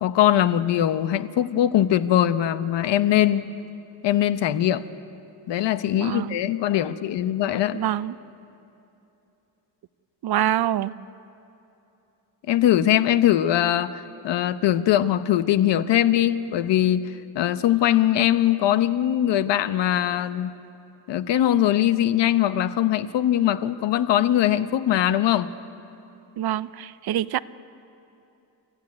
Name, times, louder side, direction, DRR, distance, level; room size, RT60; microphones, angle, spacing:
voice 1, 0.0-3.5 4.0-4.8 5.5-7.8 12.5-20.5 21.1-25.5, left 12 dB, 85° left, 13 dB, 1.0 m, -21 dB
voice 2, 5.9-6.4 7.7-8.2 10.2-10.9 26.4-27.4, right 12 dB, 65° right, 16 dB, 0.7 m, -25 dB
29.0 x 15.0 x 9.7 m, 2.9 s
cardioid pair, 150°, 42 cm